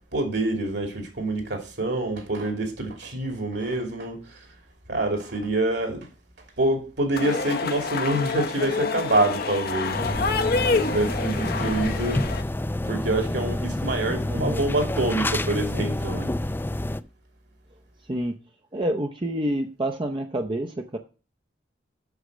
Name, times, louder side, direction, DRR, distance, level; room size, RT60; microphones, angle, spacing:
voice 1, 0.1-4.5 4.9-6.1 6.6-10.2 10.7-12.4 12.9-16.3, right 2 dB, 65° right, 2.8 m, -26 dB
sound 1, 7.2-12.4, left 4 dB, 55° left, 0.9 m, -27 dB
sound 2, 9.9-17.0, left 1 dB, 10° left, 0.4 m, -28 dB
voice 2, 14.3-14.6 18.0-18.4 18.7-21.0, right 1 dB, 25° right, 0.7 m, -28 dB
8.1 x 6.4 x 6.3 m
head